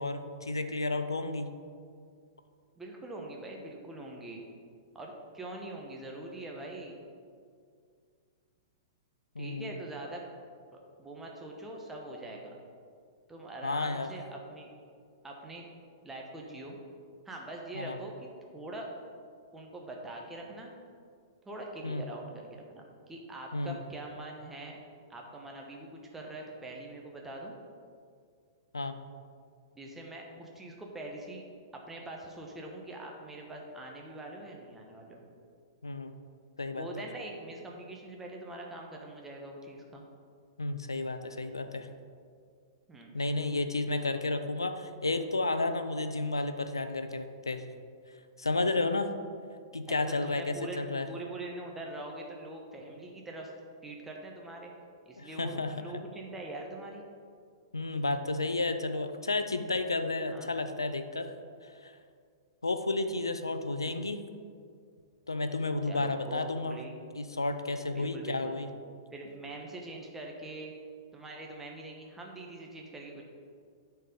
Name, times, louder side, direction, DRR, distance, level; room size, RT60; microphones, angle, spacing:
voice 1, 0.0-1.5 9.3-9.7 13.6-14.1 17.7-18.0 21.8-22.0 23.5-23.8 28.7-29.0 35.8-36.1 36.6-36.9 40.6-41.9 43.1-47.6 48.4-49.1 49.7-51.1 55.2-56.0 57.7-61.3 61.6-62.0 62.6-64.2 65.3-66.8 67.1-68.7, left 2 dB, 85° left, 9 dB, 0.6 m, -32 dB
voice 2, 2.8-4.4 4.9-7.0 9.4-10.2 10.7-12.6 13.3-14.7 15.2-15.7 16.0-16.8 17.2-18.9 19.5-20.7 21.4-24.8 25.1-27.5 29.7-31.4 31.7-35.2 36.7-40.0 42.9-43.1 49.9-50.0 50.2-53.5 53.8-54.7 55.0-57.0 60.3-60.5 65.9-66.4 66.7-66.9 67.9-68.6 69.1-70.7 71.1-73.2, right 2 dB, 10° right, -1 dB, 1.2 m, -43 dB
9.9 x 4.6 x 5.3 m, 2.2 s
figure-of-eight pair, 110°, 2 cm